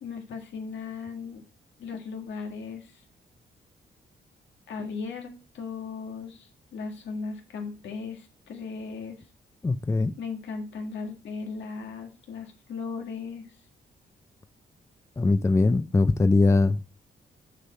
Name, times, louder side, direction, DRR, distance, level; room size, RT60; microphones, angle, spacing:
voice 1, 0.0-1.4 1.8-3.0 4.7-9.3 10.2-13.6, left 5 dB, 85° left, 1.8 m, -37 dB
voice 2, 9.6-10.1 15.2-16.8, left 3 dB, 15° left, 0.4 m, -21 dB
6.5 x 5.8 x 4.3 m
cardioid pair, 100°, 18 cm